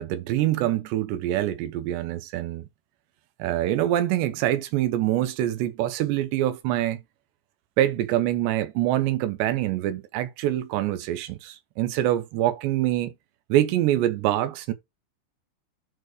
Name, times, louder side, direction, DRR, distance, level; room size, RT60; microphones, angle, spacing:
voice 1, 0.0-2.7 3.4-7.0 7.8-13.1 13.5-14.7, right 13 dB, 80° right, 3.2 m, -25 dB
11.5 x 4.3 x 4.8 m
omnidirectional pair, 5.1 m